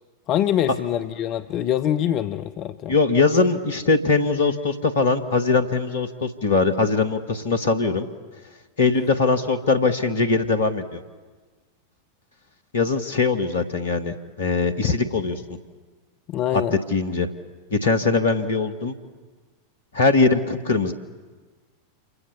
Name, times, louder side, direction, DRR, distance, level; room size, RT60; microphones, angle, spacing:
voice 1, 0.3-3.0 16.3-16.8, left 10 dB, 40° left, 9 dB, 0.7 m, -24 dB
voice 2, 2.9-8.1 8.8-11.0 12.7-15.4 16.5-16.6 16.9-17.3 17.7-18.9 19.9-20.9, left 4 dB, 65° left, 8 dB, 1.9 m, -21 dB
28.5 x 24.0 x 7.3 m, 1.4 s
figure-of-eight pair, 90°, 0 cm